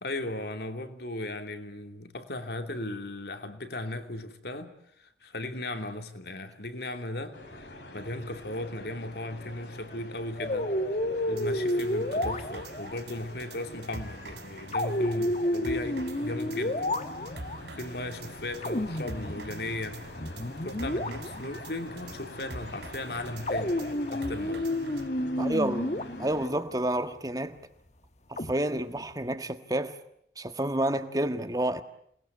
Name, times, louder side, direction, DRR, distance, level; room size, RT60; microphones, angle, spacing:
voice 1, 0.0-7.7 7.9-10.8 11.3-16.9 17.1-17.4 17.7-20.0 20.6-23.8 24.1-24.7, left 1 dB, 65° left, 2.9 m, -37 dB
sound 1, 7.3-26.5, left 1 dB, 80° left, 5.3 m, -45 dB
sound 2, 10.4-13.0 14.7-17.6 18.6-19.9 20.2-21.7 23.5-26.6 28.4-29.1, left 1 dB, 40° left, 1.4 m, -31 dB
sound 3, 11.4-25.1, right 2 dB, 75° right, 3.1 m, -46 dB
voice 2, 25.4-27.6 28.3-30.0 30.4-31.8, right 1 dB, 20° right, 1.6 m, -29 dB
28.5 x 20.5 x 9.5 m
head